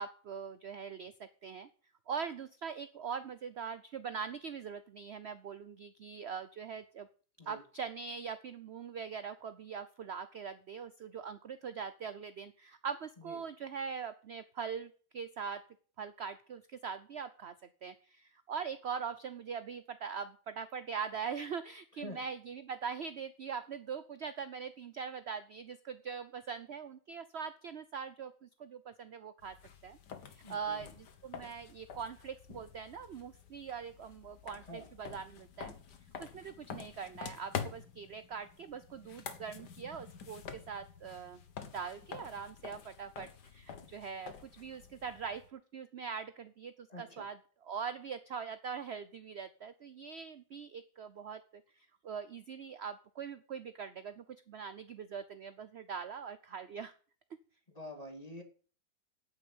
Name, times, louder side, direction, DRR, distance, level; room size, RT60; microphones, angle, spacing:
voice 1, 0.0-1.7 2.1-7.1 7.5-15.6 16.0-17.5 17.8-29.6 29.8-30.0 30.3-30.9 31.2-35.7 36.2-41.4 41.7-47.4 47.6-56.9, right 6 dB, 55° right, 12 dB, 0.7 m, -42 dB
sound 1, 29.4-45.5, left 7 dB, 70° left, 1.9 m, -48 dB
voice 2, 30.4-30.8 34.6-34.9 46.9-47.3 57.7-58.4, left 1 dB, 20° left, 4 dB, 2.3 m, -47 dB
9.3 x 9.0 x 8.7 m, 0.42 s
omnidirectional pair, 1.9 m